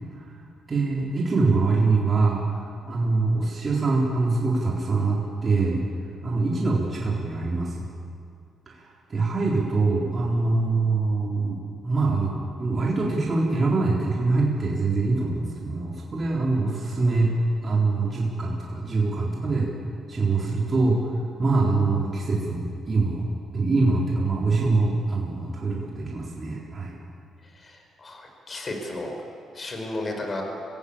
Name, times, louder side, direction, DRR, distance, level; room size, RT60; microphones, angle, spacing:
voice 1, 0.7-2.5 2.8-5.8 6.2-7.7 8.7-8.8 9.1-11.6 11.8-12.3 12.6-17.3 17.6-19.7 20.1-21.0 21.4-23.3 23.5-27.0, right 3 dB, 35° right, -3 dB, 4.0 m, -24 dB
voice 2, 27.5-29.1 29.5-30.4, left 2 dB, 35° left, 3 dB, 5.3 m, -33 dB
24.5 x 16.5 x 8.7 m, 2.4 s
cardioid pair, 90°, 0 cm